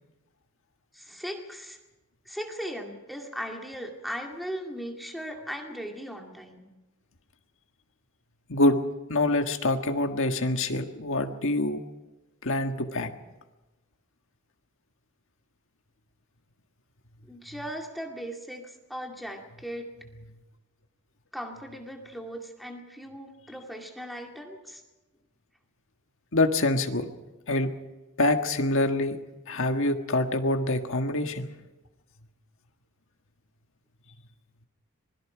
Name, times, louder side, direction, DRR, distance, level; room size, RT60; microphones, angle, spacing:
voice 1, 0.9-1.8 2.3-6.7 17.2-19.9 21.3-24.8, equal, ahead, 1 dB, 2.2 m, -38 dB
voice 2, 8.5-8.8 9.1-11.8 12.4-13.1 26.3-27.1 27.5-27.7 28.2-29.2 29.5-31.5, left 2 dB, 60° left, 5 dB, 1.6 m, -25 dB
26.0 x 21.5 x 5.0 m, 1.1 s
head